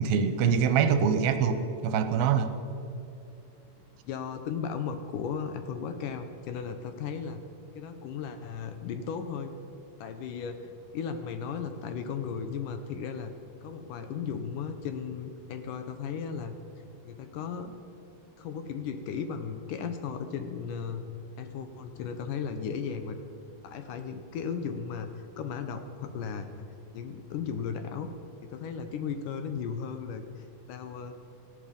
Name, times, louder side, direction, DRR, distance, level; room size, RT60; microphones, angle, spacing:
voice 1, 0.0-2.5, right 7 dB, 80° right, 9 dB, 2.7 m, -24 dB
voice 2, 0.8-1.1 4.1-7.4 7.8-9.5 10.0-13.3 13.6-16.6 17.1-17.7 18.4-21.0 21.4-23.2 23.6-26.7 26.9-28.1 28.4-31.2, left 6 dB, 75° left, 8 dB, 2.2 m, -36 dB
17.5 x 15.0 x 5.3 m, 2.7 s
omnidirectional pair, 4.2 m